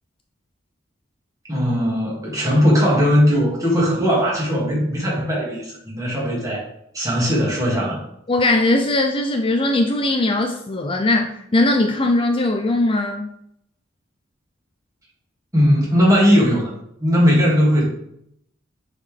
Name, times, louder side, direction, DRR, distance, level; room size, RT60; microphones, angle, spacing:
voice 1, 1.5-6.6 6.9-8.0 15.5-16.7 17.0-17.9, equal, 20° right, -5 dB, 2.3 m, -18 dB
voice 2, 8.3-13.3, left 2 dB, 30° left, 4 dB, 0.4 m, -19 dB
7.1 x 4.1 x 3.3 m, 0.73 s
head